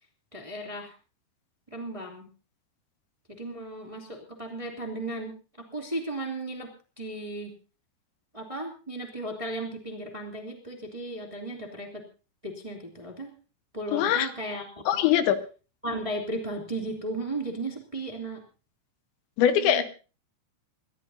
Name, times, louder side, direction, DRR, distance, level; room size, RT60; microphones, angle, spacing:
voice 1, 0.3-0.9 1.7-2.3 3.3-6.7 7.0-7.5 8.3-12.0 12.4-13.3 13.7-14.6 14.9-15.1 15.8-18.4 19.6-19.8, right 1 dB, 10° right, 1 dB, 1.5 m, -35 dB
voice 2, 13.9-14.3 14.9-15.4 19.4-19.8, left 10 dB, 85° left, 10 dB, 3.3 m, -22 dB
28.5 x 12.5 x 2.8 m, 0.34 s
omnidirectional pair, 5.3 m